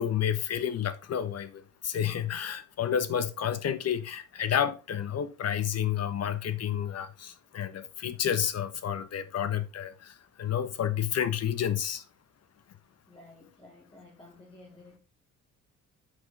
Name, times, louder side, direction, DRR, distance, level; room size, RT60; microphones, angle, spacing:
voice 1, 0.0-12.0, left 9 dB, 55° left, 1.2 m, -30 dB
voice 2, 13.1-15.0, left 2 dB, 15° left, 2.6 m, -53 dB
7.9 x 6.2 x 3.5 m
cardioid pair, 90°, 30 cm